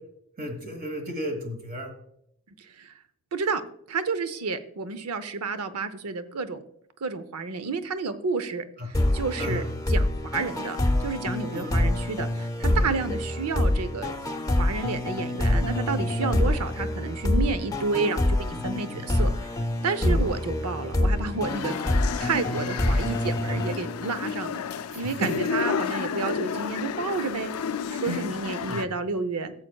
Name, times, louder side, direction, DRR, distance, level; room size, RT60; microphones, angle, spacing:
voice 1, 0.4-1.9 9.4-9.6 11.5-11.7 12.7-12.8 16.3-16.4 18.5-18.6 18.9-19.0 20.0-20.2 25.2-25.3 28.1-28.2 28.6-28.8, equal, 40° right, 4 dB, 1.3 m, -33 dB
voice 2, 3.3-3.6 3.9-6.6 7.0-14.1 14.6-19.6 19.8-21.8 22.2-24.6 24.9-27.5 27.9-29.5, right 4 dB, 85° right, 12 dB, 0.7 m, -30 dB
sound 1, 8.9-24.4, left 1 dB, 15° left, 0.6 m, -26 dB
sound 2, 21.5-28.9, left 6 dB, 90° left, 0.4 m, -32 dB
14.5 x 7.3 x 2.3 m, 0.74 s
head